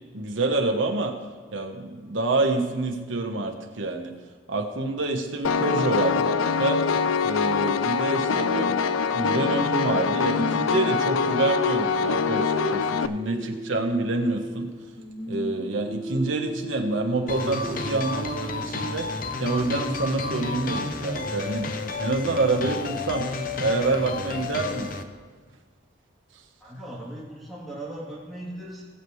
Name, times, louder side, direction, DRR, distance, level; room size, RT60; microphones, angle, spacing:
voice 1, 0.1-1.2 1.5-4.1 4.5-6.8 7.2-8.8 9.1-14.7 15.3-19.1 19.4-21.7 22.0-23.3 23.6-24.9, right 2 dB, 75° right, 3 dB, 1.2 m, -27 dB
Piano, 5.4-13.1, left 5 dB, 85° left, 0.4 m, -24 dB
Singing, 10.4-14.7 15.0-21.0, equal, 25° left, 3.0 m, -36 dB
sound 1, 17.3-25.0, left 3 dB, 45° left, 0.6 m, -31 dB
voice 2, 26.6-28.8, right 1 dB, ahead, -8 dB, 3.0 m, -38 dB
21.0 x 7.1 x 3.2 m, 1.4 s
head